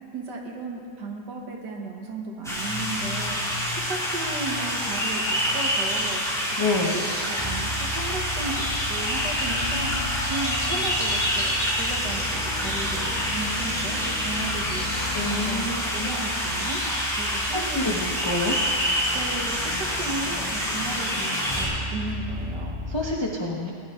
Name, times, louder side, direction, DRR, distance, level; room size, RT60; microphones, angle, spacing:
voice 1, 0.1-3.6 3.9-6.2 6.7-7.0 7.3-16.8 17.2-17.9 19.1-22.9, right 3 dB, 55° right, 0 dB, 1.7 m, -35 dB
sound 1, 2.4-21.7, equal, ahead, 2.5 m, -27 dB
voice 2, 6.6-7.0 15.1-16.1 17.5-18.6 22.9-23.7, left 2 dB, 30° left, -3 dB, 0.5 m, -28 dB
sound 2, 7.4-23.2, equal, 15° right, 1.3 m, -36 dB
sound 3, 9.9-10.3 11.9-17.0 18.8-21.8, left 5 dB, 75° left, 1.8 m, -40 dB
18.0 x 10.5 x 3.7 m, 2.4 s
omnidirectional pair, 2.4 m